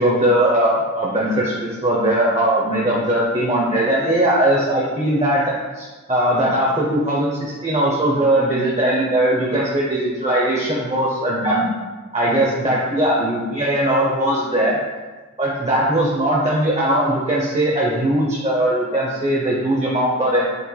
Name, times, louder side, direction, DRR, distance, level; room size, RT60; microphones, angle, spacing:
voice 1, 0.0-5.4 5.7-11.7 12.1-14.8 15.4-20.5, right 1 dB, 25° right, -5 dB, 0.7 m, -19 dB
6.8 x 3.1 x 2.3 m, 1.3 s
wide cardioid pair, 90°, 29 cm